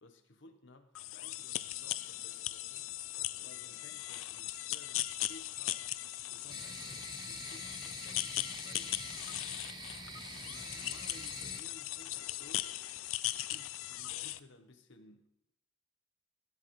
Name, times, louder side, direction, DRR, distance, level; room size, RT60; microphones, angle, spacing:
voice 1, 0.0-2.9 3.3-5.9 6.3-7.0 7.3-8.4 8.6-9.6 10.4-12.8 13.3-15.2, left 2 dB, 70° left, 5 dB, 1.0 m, -58 dB
sound 1, 0.9-14.4, left 15 dB, 85° left, 0.4 m, -39 dB
sound 2, 1.5-12.5, left 2 dB, 40° left, 2.3 m, -66 dB
sound 3, 6.5-11.6, right 3 dB, 20° right, 0.7 m, -46 dB
16.0 x 10.0 x 3.1 m, 0.75 s
head